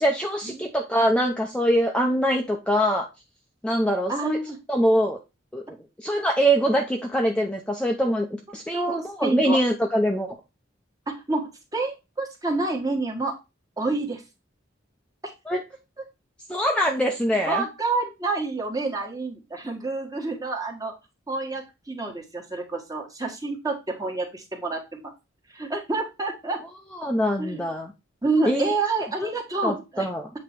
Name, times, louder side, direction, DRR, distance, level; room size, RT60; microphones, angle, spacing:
voice 1, 0.0-3.1 3.6-4.4 4.7-5.2 5.5-8.3 8.5-10.4 15.5-15.6 16.5-17.6 27.0-27.9 28.5-28.7 29.6-30.3, equal, 5° left, 1 dB, 0.7 m, -23 dB
voice 2, 4.1-4.6 8.7-9.6 11.1-13.4 13.8-14.2 17.4-20.9 21.3-25.1 25.5-26.6 27.4-27.6 28.2-30.1, right 3 dB, 20° right, 0 dB, 1.6 m, -28 dB
8.0 x 3.1 x 4.5 m, 0.25 s
head